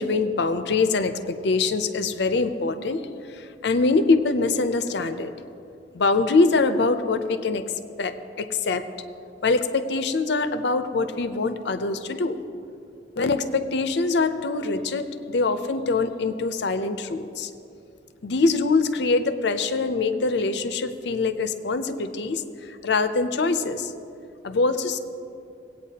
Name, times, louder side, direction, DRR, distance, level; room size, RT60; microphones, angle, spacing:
voice 1, 0.0-3.0 3.3-5.3 5.9-7.7 8.0-8.9 9.4-12.4 13.2-17.5 18.2-23.9 24.4-25.0, left 3 dB, 60° left, 10 dB, 0.5 m, -24 dB
18.0 x 8.7 x 2.8 m, 2.7 s
head